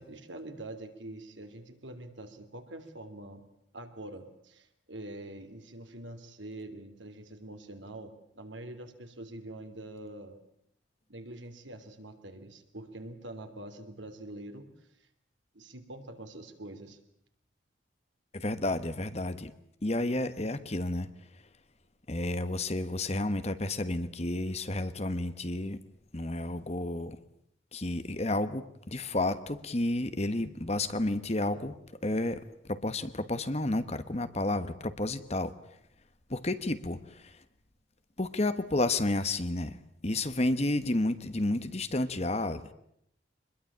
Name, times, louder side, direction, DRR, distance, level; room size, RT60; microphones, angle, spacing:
voice 1, 0.0-3.4 3.7-10.4 11.1-14.7 15.5-17.0, right 1 dB, 75° right, 7 dB, 3.2 m, -45 dB
voice 2, 18.3-19.5 19.8-21.1 22.1-25.8 26.1-27.2 27.7-31.7 32.0-32.4 32.7-35.5 36.3-37.4 38.2-39.8 40.0-42.7, left 2 dB, 35° left, 12 dB, 1.2 m, -31 dB
25.0 x 21.5 x 8.7 m, 0.73 s
head